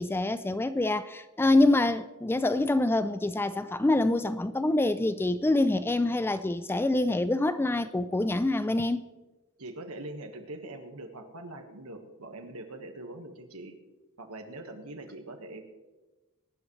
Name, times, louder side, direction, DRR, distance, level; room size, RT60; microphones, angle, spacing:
voice 1, 0.0-9.1, left 2 dB, 10° left, 0.3 m, -26 dB
voice 2, 9.6-13.8 14.2-15.6, right 2 dB, 70° right, 1.5 m, -42 dB
21.5 x 10.5 x 3.2 m
head